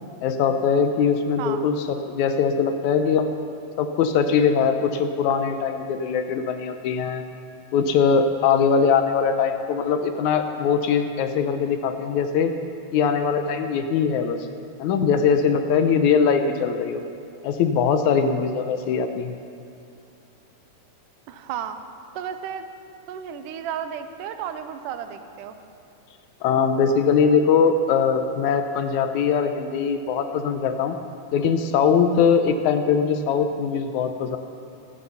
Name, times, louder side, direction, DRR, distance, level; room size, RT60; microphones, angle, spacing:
voice 1, 0.2-3.3 3.8-7.3 7.7-12.5 12.9-14.5 14.8-17.0 17.4-19.4 26.4-31.0 31.3-34.4, left 6 dB, 75° left, 8 dB, 1.9 m, -21 dB
voice 2, 21.3-21.8 22.1-22.7 23.1-25.6, right 8 dB, 90° right, 9 dB, 2.3 m, -33 dB
14.5 x 13.5 x 5.6 m, 2.5 s
omnidirectional pair, 3.7 m